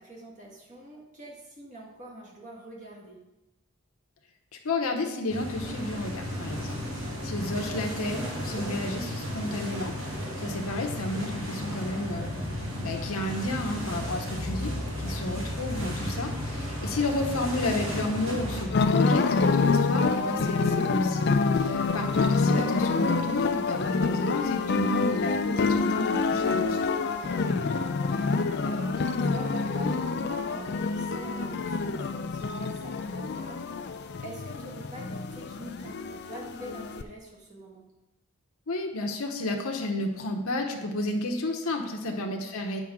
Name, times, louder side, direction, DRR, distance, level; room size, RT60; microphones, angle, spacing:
voice 1, 0.0-3.2 6.9-7.2 10.1-10.5 14.9-15.1 15.7-15.9 21.6-22.0 27.1-37.8 42.0-42.2, right 1 dB, 35° right, -2 dB, 1.5 m, -45 dB
voice 2, 4.6-6.8 7.2-9.9 10.4-12.3 12.8-14.7 15.0-26.8 38.7-42.8, left 2 dB, 75° left, 2 dB, 0.8 m, -31 dB
sound 1, 5.3-18.7, left 1 dB, 60° right, 1.8 m, -34 dB
sound 2, 18.7-37.0, left 4 dB, 50° left, 0.4 m, -27 dB
7.5 x 5.6 x 3.6 m, 0.96 s
head